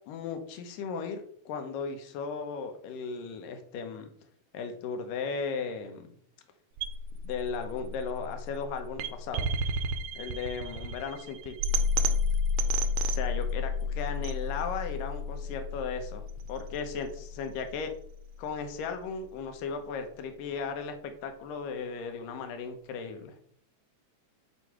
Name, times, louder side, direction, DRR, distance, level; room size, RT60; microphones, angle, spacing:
voice 1, 0.1-4.1 4.5-6.1 7.2-9.5 10.2-11.6 13.1-17.9 18.4-23.4, left 5 dB, 85° left, 6 dB, 2.5 m, -36 dB
sound 1, 6.8-18.8, left 2 dB, 80° right, 2.0 m, -31 dB
8.2 x 3.1 x 4.7 m, 0.63 s
omnidirectional pair, 3.8 m